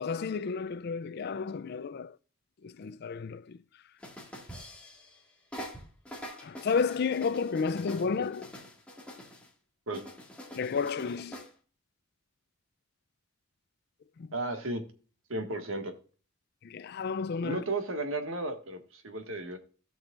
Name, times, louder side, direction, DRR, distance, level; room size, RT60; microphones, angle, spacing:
voice 1, 0.0-2.2 2.6-3.6 6.4-8.5 10.6-11.4 14.2-14.3 16.6-17.6, left 5 dB, 50° left, 0.4 m, -32 dB
sound 1, 4.0-5.2 5.5-9.5 9.9-11.5, equal, 5° left, 1.9 m, -45 dB
voice 2, 14.3-14.8 15.3-15.9 17.4-19.6, right 2 dB, 75° right, 1.7 m, -34 dB
16.5 x 6.1 x 2.5 m
head